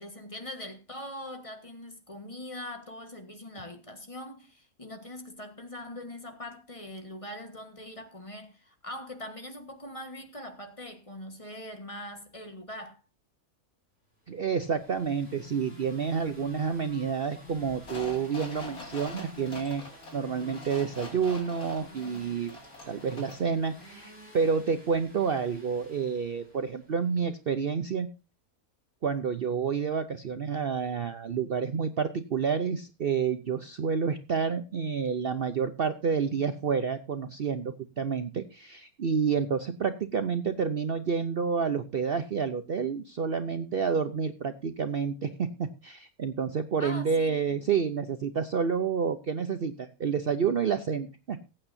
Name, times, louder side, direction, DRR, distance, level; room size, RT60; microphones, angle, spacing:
voice 1, 0.0-13.0 46.8-47.6, left 1 dB, 25° left, 1.5 m, -42 dB
sound 1, 14.3-27.2, left 4 dB, 45° left, 5.5 m, -51 dB
voice 2, 14.3-22.5 22.9-28.1 29.0-51.4, right 6 dB, 50° right, 0.8 m, -29 dB
sound 2, 17.8-23.5 23.8-23.9, left 2 dB, 85° left, 3.4 m, -44 dB
20.5 x 8.9 x 2.7 m
omnidirectional pair, 1.5 m